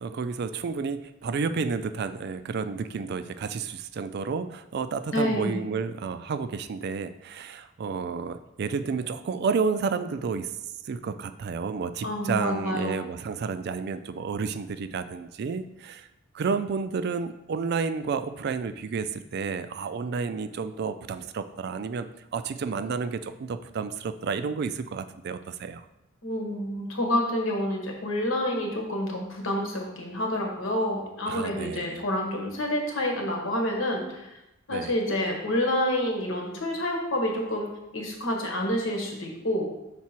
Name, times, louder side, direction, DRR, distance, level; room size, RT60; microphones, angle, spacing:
voice 1, 0.0-10.5 10.8-16.1 16.3-25.8 31.3-32.0 34.7-34.9, right 5 dB, 55° right, 11 dB, 0.3 m, -31 dB
voice 2, 5.1-5.6 12.0-13.0 26.2-34.4 34.7-37.7 37.9-39.7, left 1 dB, 85° left, 1 dB, 1.2 m, -28 dB
6.0 x 3.7 x 4.3 m, 0.90 s
head